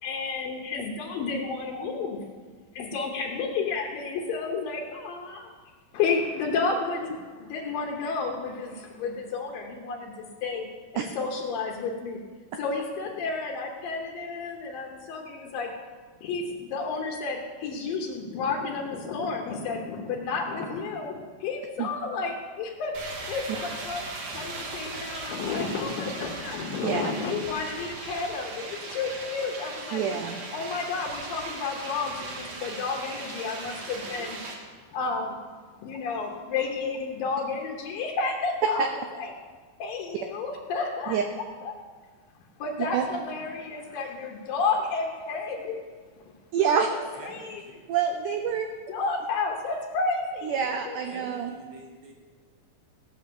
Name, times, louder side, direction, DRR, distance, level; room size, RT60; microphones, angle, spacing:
voice 1, 0.0-2.2 2.8-5.5 5.9-10.7 10.9-12.2 12.6-15.7 16.2-22.9 23.3-30.0 30.5-34.4 34.9-35.4 35.8-38.9 39.1-39.3 39.8-41.2 41.6-41.7 42.6-45.8 46.2-46.3 46.6-46.8 47.2-47.6 48.9-50.5 50.9-51.0, left 4 dB, 75° left, 0 dB, 2.7 m, -31 dB
sound 1, 22.9-34.5, right 3 dB, 60° right, 2.9 m, -38 dB
voice 2, 29.9-30.4 38.8-38.9 41.1-41.2 42.9-43.0 46.5-46.9 47.9-48.7 50.4-51.5, right 7 dB, 75° right, 5 dB, 2.0 m, -26 dB
voice 3, 47.1-47.9 50.5-50.8 51.0-52.1, right 2 dB, 40° right, -1 dB, 2.5 m, -47 dB
17.0 x 6.4 x 6.9 m, 1.5 s
omnidirectional pair, 4.2 m